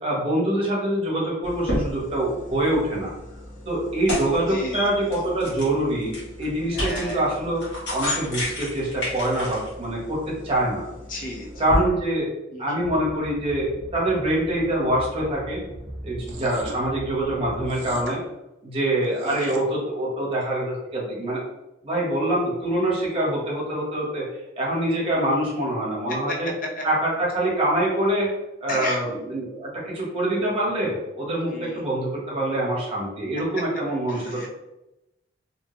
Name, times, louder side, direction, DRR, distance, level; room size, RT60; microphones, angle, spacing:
voice 1, 0.0-3.1 3.6-7.6 7.9-10.9 11.6-12.3 12.6-15.6 16.0-18.2 18.6-21.4 21.8-24.2 24.6-26.5 26.8-28.3 28.6-34.5, right 1 dB, 30° right, -5 dB, 1.0 m, -25 dB
sound 1, 1.4-11.8, left 1 dB, 65° left, 1.1 m, -32 dB
voice 2, 4.5-5.1 6.7-7.3 11.1-11.5 12.5-12.8 19.2-19.5 28.7-29.0 31.5-31.9 34.1-34.5, left 1 dB, 45° left, -1 dB, 0.7 m, -34 dB
sound 2, 12.8-18.0, right 1 dB, 5° right, 0.8 m, -39 dB
sound 3, 16.2-16.8 17.7-18.2 19.0-19.6, right 4 dB, 75° right, 0.5 m, -39 dB
2.9 x 2.2 x 3.0 m, 0.93 s
head